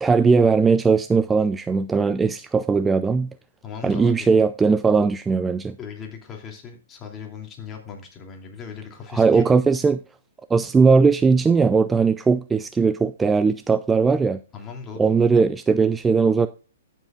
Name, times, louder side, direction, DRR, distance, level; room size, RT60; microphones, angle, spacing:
voice 1, 0.0-3.3 3.8-5.8 9.1-10.0 10.5-14.4 15.0-16.5, right 5 dB, 10° right, 0.4 m, -19 dB
voice 2, 3.6-4.3 5.8-9.4 14.5-15.1, left 6 dB, 20° left, 2.9 m, -38 dB
15.0 x 7.3 x 2.5 m
hypercardioid pair, 125°, 0 cm